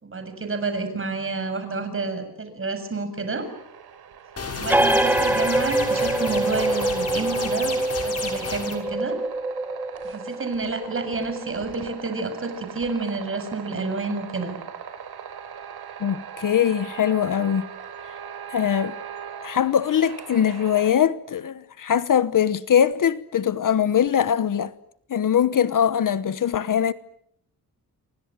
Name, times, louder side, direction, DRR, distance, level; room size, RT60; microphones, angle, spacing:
voice 1, 0.0-3.5 4.6-9.2 10.0-14.5, right 3 dB, 35° right, 6.9 m, -29 dB
sound 1, 3.4-20.9, right 7 dB, 80° right, 4.4 m, -40 dB
sound 2, 4.4-8.7, left 4 dB, 40° left, 6.4 m, -32 dB
sound 3, 4.7-11.9, right 1 dB, 5° right, 1.1 m, -25 dB
voice 2, 16.0-17.7 18.5-19.0 19.4-24.7 25.1-26.9, left 9 dB, 55° left, 1.1 m, -22 dB
29.0 x 25.0 x 7.6 m
wide cardioid pair, 135°, 38 cm